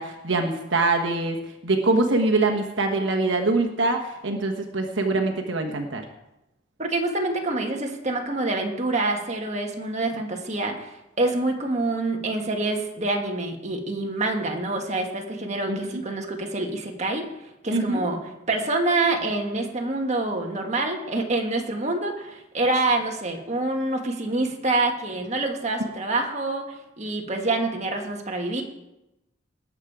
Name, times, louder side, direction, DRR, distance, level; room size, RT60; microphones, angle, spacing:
voice 1, 0.0-1.4 1.6-6.0 15.7-15.8 17.7-18.0, right 2 dB, 70° right, 3 dB, 1.3 m, -23 dB
voice 2, 6.8-17.3 17.6-18.2 18.5-28.6, right 2 dB, 35° right, 2 dB, 1.6 m, -26 dB
19.5 x 7.3 x 4.9 m, 0.92 s
head